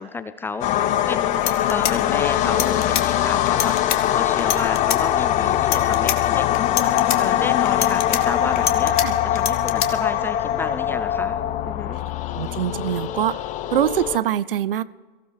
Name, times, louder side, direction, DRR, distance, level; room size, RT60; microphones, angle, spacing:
voice 1, 0.0-12.0, left 4 dB, 10° left, 12 dB, 0.3 m, -31 dB
sound 1, 0.6-14.2, left 12 dB, 25° left, 0.7 m, -22 dB
sound 2, 1.0-1.1 1.3-3.1 3.5-4.0 4.4-5.0 5.5-6.2 6.5-7.2 7.7-9.1 9.4-9.9, left 11 dB, 55° left, 1.4 m, -25 dB
voice 2, 12.3-13.4 13.7-14.8, right 10 dB, 70° right, 18 dB, 0.6 m, -23 dB
23.0 x 15.5 x 3.4 m, 1.4 s
figure-of-eight pair, 105°, 29 cm